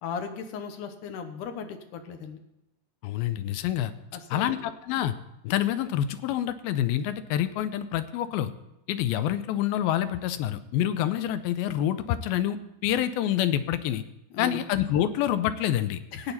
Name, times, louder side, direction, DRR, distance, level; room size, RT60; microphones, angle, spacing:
voice 1, 0.0-2.4 4.1-4.7 14.3-14.6 16.1-16.3, left 6 dB, 70° left, 6 dB, 2.2 m, -36 dB
voice 2, 3.0-3.9 4.3-5.1 5.4-8.5 8.9-12.6 12.8-14.0 14.4-16.0, left 11 dB, 85° left, 12 dB, 2.4 m, -27 dB
16.0 x 9.0 x 4.1 m, 0.91 s
omnidirectional pair, 4.3 m